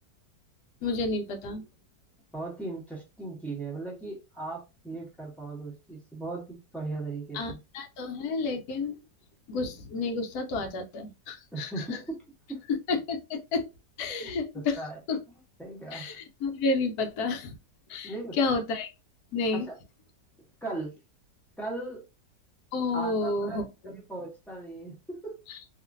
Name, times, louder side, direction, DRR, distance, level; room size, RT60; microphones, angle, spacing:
voice 1, 0.8-1.6 7.3-9.0 9.5-12.0 12.9-13.6 14.0-14.8 15.1-15.2 15.9-17.6 17.9-18.9 19.3-19.7 22.7-24.0 25.5-25.6, left 3 dB, 70° left, 1.0 m, -30 dB
voice 2, 2.3-7.6 11.5-12.0 12.5-12.6 14.2-15.0 15.6-16.2 18.0-18.6 19.5-19.8 20.6-20.9 21.6-22.0 22.9-23.6 24.1-25.4, right 3 dB, ahead, 0.3 m, -38 dB
2.8 x 2.5 x 2.4 m
omnidirectional pair, 1.9 m